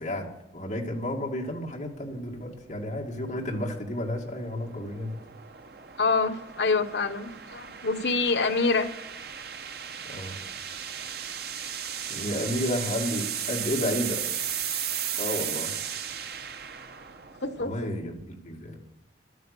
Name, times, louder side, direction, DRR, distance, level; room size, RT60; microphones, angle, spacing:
voice 1, 0.0-5.2 10.1-10.4 12.1-14.2 15.2-16.2 17.6-18.8, left 1 dB, 40° left, -1 dB, 2.2 m, -32 dB
sound 1, 1.5-17.8, right 8 dB, 55° right, 0.8 m, -36 dB
voice 2, 6.0-8.9 17.4-17.7, left 4 dB, 65° left, 7 dB, 1.0 m, -26 dB
12.5 x 9.4 x 6.8 m, 0.90 s
head